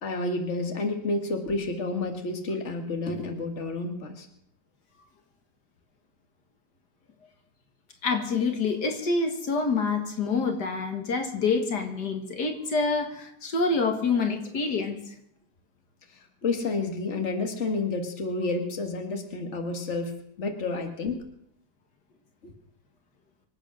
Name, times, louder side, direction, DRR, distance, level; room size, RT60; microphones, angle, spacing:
voice 1, 0.0-4.3 16.1-20.1 20.4-21.2 22.4-22.5, left 3 dB, 45° left, 5 dB, 2.2 m, -30 dB
voice 2, 8.0-15.0, left 4 dB, 75° left, 5 dB, 2.4 m, -27 dB
25.0 x 8.7 x 6.3 m, 0.72 s
omnidirectional pair, 1.8 m